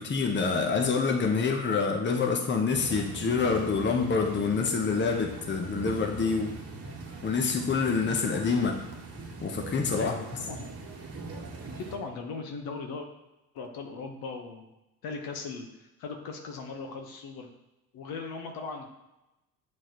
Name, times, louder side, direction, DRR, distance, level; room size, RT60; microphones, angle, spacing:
voice 1, 0.0-6.6 7.2-8.8 9.4-10.1, left 5 dB, 25° left, 3 dB, 1.1 m, -27 dB
sound 1, 2.7-12.0, right 3 dB, 35° right, 1.4 m, -41 dB
voice 2, 9.9-10.7 11.8-13.1 13.5-14.7 15.0-17.5 17.9-18.9, left 4 dB, 55° left, 3 dB, 1.2 m, -38 dB
8.4 x 4.5 x 3.0 m, 0.97 s
figure-of-eight pair, 50°, 44 cm